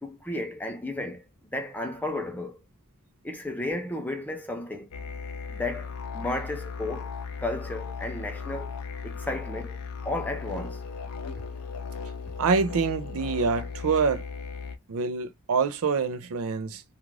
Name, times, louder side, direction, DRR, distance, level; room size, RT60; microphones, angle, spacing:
voice 1, 0.0-1.2 1.5-2.6 3.2-4.9 5.5-7.1 7.4-8.7 9.0-10.8, left 2 dB, 10° left, 0.5 m, -33 dB
sound 1, 4.9-14.8, left 5 dB, 80° left, 0.5 m, -37 dB
voice 2, 12.4-14.2 14.9-16.8, right 5 dB, 65° right, 0.4 m, -26 dB
2.4 x 2.4 x 3.1 m
head